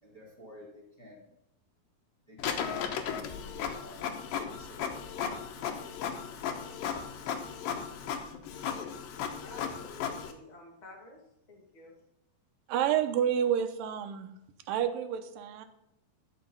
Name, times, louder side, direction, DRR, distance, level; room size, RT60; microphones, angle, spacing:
voice 1, 0.0-1.2 2.3-4.1 4.5-4.9 6.3-6.5, left 1 dB, 10° left, -4 dB, 2.6 m, -50 dB
Printer, 2.4-10.3, left 7 dB, 75° left, 2.5 m, -36 dB
voice 2, 9.4-11.2 11.5-11.9, left 2 dB, 25° left, -1 dB, 0.8 m, -50 dB
voice 3, 12.7-14.3 14.7-15.7, right 9 dB, 75° right, 7 dB, 2.4 m, -29 dB
12.5 x 4.9 x 5.4 m, 0.82 s
omnidirectional pair, 4.3 m